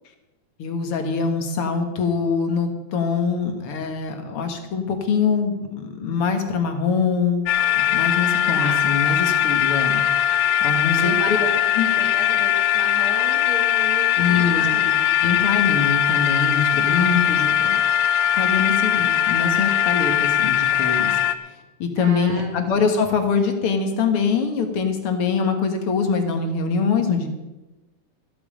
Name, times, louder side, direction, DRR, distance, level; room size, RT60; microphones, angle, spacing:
voice 1, 0.6-7.4 7.9-10.0 10.6-11.4 11.8-11.9 14.2-14.9 15.2-17.8 18.3-21.2 21.8-27.3, left 5 dB, 55° left, 5 dB, 2.4 m, -23 dB
sound 1, 7.5-21.3, left 11 dB, 75° left, 1.8 m, -20 dB
voice 2, 8.5-8.9 11.0-15.0 22.0-22.7, right 2 dB, 50° right, 2 dB, 2.2 m, -34 dB
15.0 x 13.0 x 5.1 m, 1.0 s
omnidirectional pair, 3.4 m